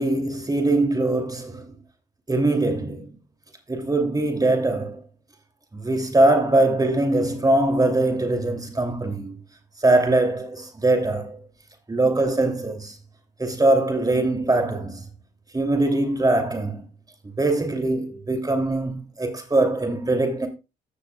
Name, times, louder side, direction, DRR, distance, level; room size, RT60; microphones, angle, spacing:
voice 1, 0.0-1.8 2.3-3.2 3.7-5.0 5.7-9.4 9.8-11.4 11.9-12.9 13.4-15.0 15.5-16.9 17.4-20.5, right 2 dB, 20° right, 2.9 m, -22 dB
14.5 x 6.7 x 2.4 m
cardioid pair, 90°, 20 cm